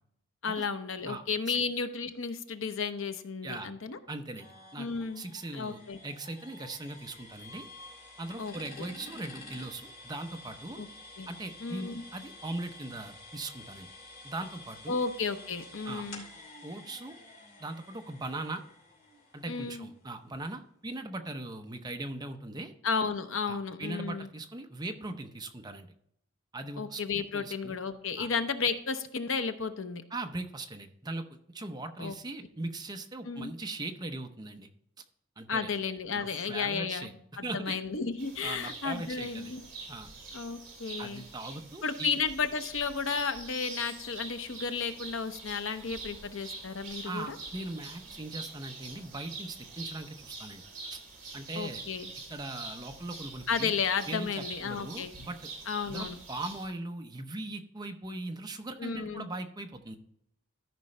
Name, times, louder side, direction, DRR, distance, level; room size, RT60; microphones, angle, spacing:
voice 1, 0.4-4.0 4.8-5.2 5.5-6.0 8.4-8.9 10.8-10.9 11.2-11.3 11.6-12.0 14.9-16.2 19.5-19.8 22.8-24.3 26.8-30.0 32.0-32.1 33.3-33.5 35.5-39.6 40.3-41.2 41.8-47.4 51.5-52.1 53.5-55.1 55.7-56.2 58.8-59.3, left 5 dB, 65° left, 9 dB, 0.7 m, -33 dB
voice 2, 1.1-1.6 3.4-3.7 4.1-7.6 8.2-10.8 11.3-13.9 14.2-15.0 15.8-16.0 16.6-17.1 17.6-18.6 19.3-22.7 23.5-25.9 26.5-27.0 27.3-27.7 28.2-28.3 30.1-31.2 31.5-34.7 35.4-35.7 36.1-37.1 37.4-37.8 38.4-39.5 39.9-40.1 41.0-42.1 47.0-50.6 50.9-51.0 51.3-51.8 52.3-53.7 54.1-55.4 55.9-60.0, right 2 dB, 20° right, 5 dB, 0.7 m, -40 dB
sound 1, 4.4-20.0, left 2 dB, 40° left, 2.9 m, -50 dB
sound 2, 38.2-56.7, right 3 dB, 40° right, 3.2 m, -45 dB
13.5 x 5.3 x 3.2 m, 0.72 s
head